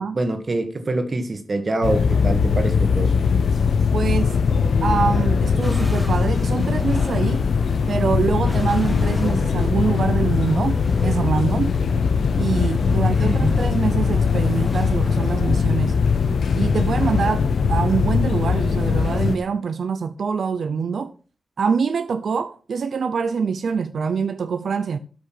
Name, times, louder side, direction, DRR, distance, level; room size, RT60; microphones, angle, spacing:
voice 1, 0.0-3.1 9.3-9.5 13.2-13.6, right 2 dB, 35° right, 2.0 m, -25 dB
sound 1, 1.8-19.4, left 5 dB, 85° left, 1.0 m, -20 dB
voice 2, 3.9-4.4 4.8-7.4 7.9-11.8 12.4-16.0 16.5-21.1 21.6-25.0, right 5 dB, 75° right, 0.7 m, -24 dB
sound 2, 5.6-17.4, left 1 dB, 5° left, 2.5 m, -39 dB
12.5 x 6.4 x 6.0 m
wide cardioid pair, 175°, 0 cm